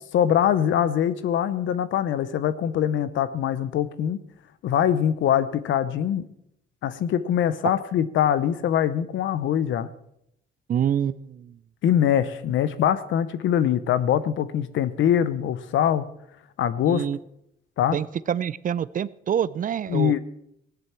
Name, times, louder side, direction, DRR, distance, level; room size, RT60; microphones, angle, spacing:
voice 1, 0.1-4.2 4.6-6.3 6.8-9.9 11.8-16.0 16.6-17.0 17.8-18.0 19.9-20.2, left 9 dB, 75° left, 15 dB, 0.8 m, -23 dB
voice 2, 10.7-11.5 16.9-17.2 17.9-20.2, right 9 dB, 45° right, 18 dB, 0.4 m, -26 dB
16.5 x 10.5 x 4.4 m, 0.76 s
cardioid pair, 90°, 20 cm